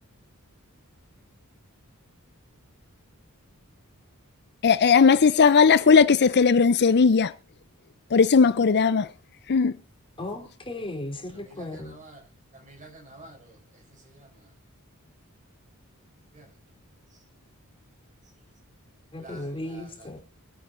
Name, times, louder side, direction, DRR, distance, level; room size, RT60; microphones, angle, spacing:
voice 1, 4.6-7.3 8.1-9.1 9.5-9.7, left 5 dB, 50° left, 0.5 m, -18 dB
voice 2, 10.2-12.0 19.1-20.2, left 1 dB, 25° left, 3.7 m, -36 dB
voice 3, 11.5-12.2 12.5-13.5 14.0-14.3 16.3-16.5 19.2-19.5, right 2 dB, 35° right, 6.3 m, -47 dB
24.5 x 9.3 x 2.6 m
head